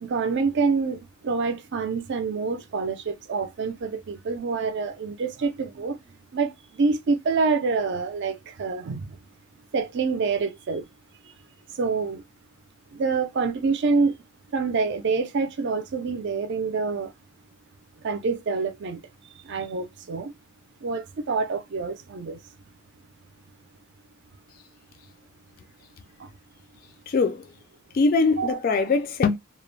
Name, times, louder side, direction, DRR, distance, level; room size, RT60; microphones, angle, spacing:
voice 1, 0.0-6.0 6.3-9.1 9.7-10.8 11.8-12.2 12.9-14.1 14.5-17.1 18.0-19.0 19.5-20.3 20.8-22.4 28.4-28.6, right 4 dB, 55° right, 0.4 m, -26 dB
voice 2, 27.1-27.5 27.9-29.4, left 4 dB, 40° left, 0.3 m, -22 dB
2.3 x 2.0 x 3.1 m
head